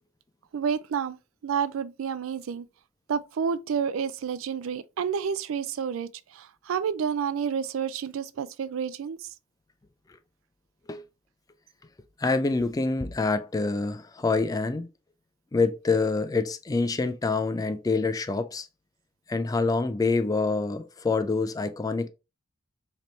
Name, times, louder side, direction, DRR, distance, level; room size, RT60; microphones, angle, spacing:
voice 1, 0.5-1.2 1.4-2.7 3.1-9.3, right 7 dB, 85° right, 0.4 m, -30 dB
voice 2, 12.2-14.9 15.5-18.7 19.3-22.1, left 3 dB, 20° left, 0.3 m, -26 dB
4.0 x 3.0 x 3.1 m
head